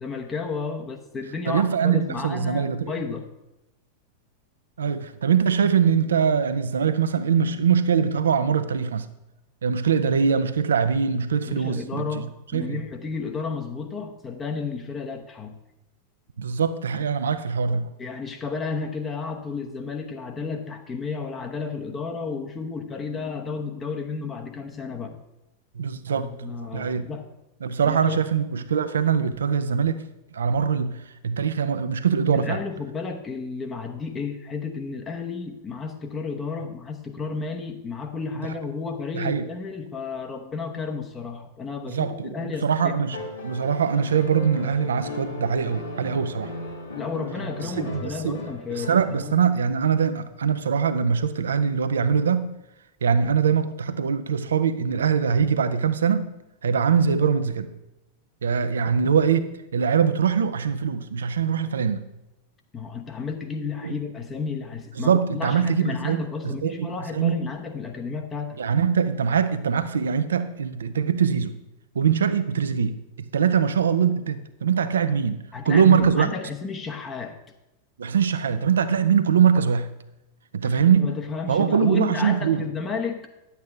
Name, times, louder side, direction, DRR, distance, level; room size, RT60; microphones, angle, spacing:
voice 1, 0.0-3.3 11.4-15.6 18.0-25.2 26.1-27.3 27.8-28.2 32.3-42.9 46.9-49.4 62.7-68.6 75.5-77.4 80.6-83.3, left 5 dB, 20° left, 4 dB, 0.9 m, -32 dB
voice 2, 1.5-3.0 4.8-9.1 9.6-12.8 16.4-17.9 25.8-27.1 27.6-30.0 30.3-31.0 31.2-32.6 39.1-39.5 41.8-46.5 47.8-48.4 48.7-52.5 53.0-56.3 56.6-57.7 58.4-62.0 63.8-63.9 65.0-67.6 68.6-71.6 71.9-76.3 78.0-79.9 80.5-81.1 81.5-82.6, right 7 dB, 65° right, 12 dB, 0.6 m, -23 dB
sound 1, 43.1-49.6 51.0-51.1, left 2 dB, 75° left, 2.2 m, -37 dB
10.5 x 8.2 x 3.4 m, 0.95 s
figure-of-eight pair, 90°, 0 cm